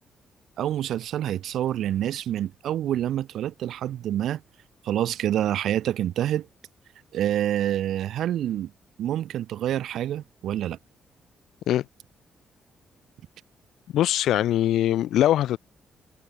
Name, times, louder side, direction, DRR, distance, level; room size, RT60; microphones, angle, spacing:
voice 1, 0.6-4.4 4.8-6.5 7.1-8.7 9.0-10.8, right 11 dB, 70° right, 2.0 m, -27 dB
voice 2, 13.9-15.6, left 12 dB, 80° left, 1.6 m, -22 dB
cardioid pair, 150°, 0 cm